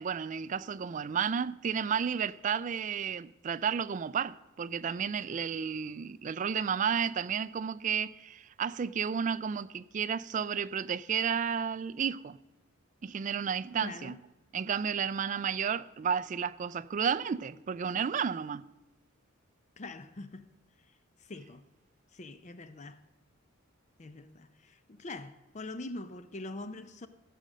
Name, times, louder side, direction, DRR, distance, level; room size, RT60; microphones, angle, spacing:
voice 1, 0.0-12.4 13.0-14.2 14.5-18.6, right 7 dB, 40° right, 0.3 m, -32 dB
voice 2, 13.8-14.2 19.8-20.5 20.9-21.7 22.1-23.0 24.0-27.1, left 2 dB, 35° left, 0.5 m, -44 dB
15.5 x 6.6 x 6.2 m
head